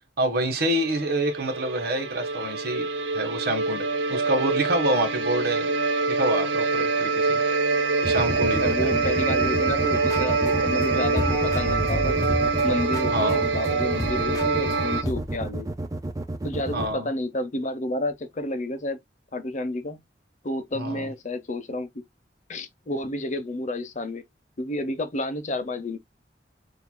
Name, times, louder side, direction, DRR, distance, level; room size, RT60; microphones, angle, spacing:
voice 1, 0.2-2.9 3.1-5.7 6.1-7.4 8.0-8.9 13.1-13.4 16.7-17.1 20.7-21.1, right 1 dB, 60° right, 1.5 m, -27 dB
sound 1, 0.7-15.0, right 3 dB, 80° right, 0.8 m, -25 dB
sound 2, 8.0-16.9, right 2 dB, 20° right, 0.5 m, -30 dB
voice 2, 8.6-12.2 12.6-15.7 16.4-19.0 19.3-20.0 20.4-22.0 22.5-24.2 24.6-26.0, left 1 dB, 45° left, 0.8 m, -30 dB
sound 3, 9.9-10.8 11.1-15.5, equal, 20° left, 1.2 m, -33 dB
7.0 x 2.7 x 2.2 m
head